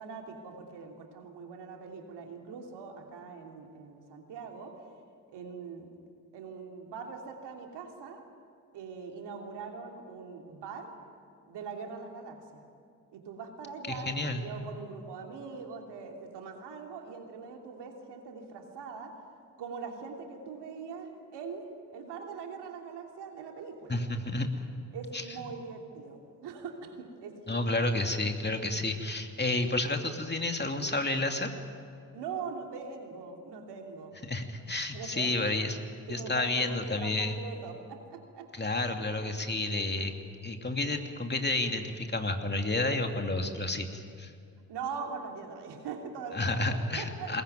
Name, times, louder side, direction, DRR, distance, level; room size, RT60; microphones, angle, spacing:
voice 1, 0.0-4.8 5.3-5.9 6.3-8.2 8.7-10.9 11.5-12.6 13.1-19.2 19.6-24.0 24.9-27.6 32.1-34.2 34.9-35.3 36.1-38.7 39.3-39.6 44.7-47.4, right 5 dB, 70° right, 2 dB, 3.1 m, -42 dB
voice 2, 13.9-14.4 23.9-24.7 25.1-25.5 27.5-31.5 34.3-35.8 36.1-37.4 38.5-40.1 40.4-44.3 46.3-47.4, left 2 dB, 25° left, 4 dB, 2.8 m, -31 dB
22.0 x 20.0 x 9.4 m, 2.3 s
hypercardioid pair, 40°, 42 cm